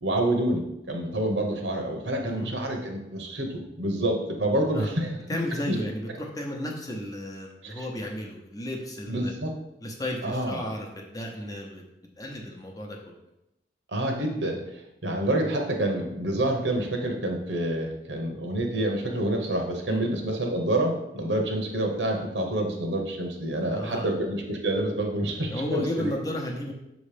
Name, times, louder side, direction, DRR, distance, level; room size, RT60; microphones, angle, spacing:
voice 1, 0.0-5.1 5.7-5.8 7.6-7.9 9.1-9.6 10.2-10.6 13.9-14.6 15.0-26.1, right 1 dB, 80° right, 3 dB, 1.1 m, -27 dB
voice 2, 5.3-9.3 9.8-11.8 12.2-13.1 19.9-20.0 23.6-24.1 25.5-26.7, left 1 dB, 20° left, 0 dB, 0.8 m, -33 dB
6.4 x 3.1 x 5.0 m, 0.87 s
head